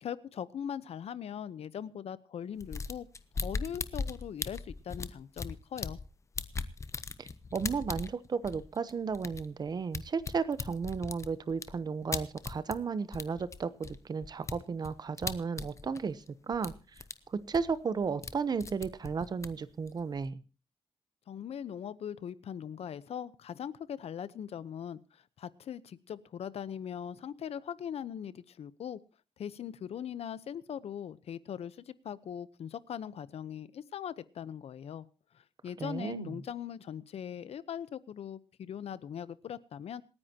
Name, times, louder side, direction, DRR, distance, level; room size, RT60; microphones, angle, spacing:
voice 1, 0.0-3.1 3.4-6.0 21.3-29.0 29.4-35.1 35.3-40.0, left 9 dB, 85° left, 17 dB, 0.9 m, -40 dB
sound 1, 2.6-6.1 6.3-12.8 13.1-16.3 16.5-17.1 17.4-18.3 18.6-20.3, left 4 dB, 30° left, 0.8 m, -39 dB
voice 2, 7.2-16.7 17.3-20.4 35.8-36.4, right 5 dB, 40° right, 15 dB, 0.9 m, -34 dB
27.0 x 9.9 x 2.9 m, 0.34 s
wide cardioid pair, 175°, 10 cm